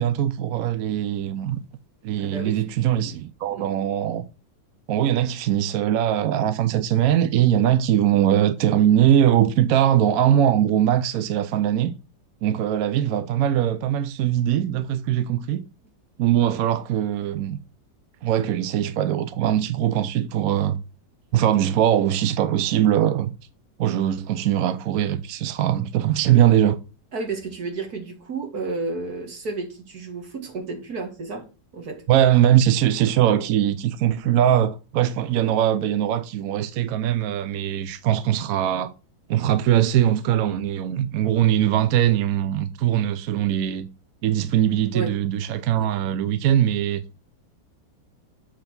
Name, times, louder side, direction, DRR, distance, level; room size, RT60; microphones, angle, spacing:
voice 1, 0.0-1.6 2.0-4.3 4.9-11.9 12.4-15.6 16.2-17.6 18.2-20.8 21.3-23.3 23.8-26.8 32.1-38.9 39.3-43.9 44.2-47.0, right 11 dB, 70° right, 0.8 m, -21 dB
voice 2, 2.2-2.6 3.5-3.7 27.1-31.5 31.7-32.0 44.9-45.1, right 3 dB, 50° right, 2.4 m, -31 dB
7.5 x 4.7 x 5.9 m
omnidirectional pair, 2.1 m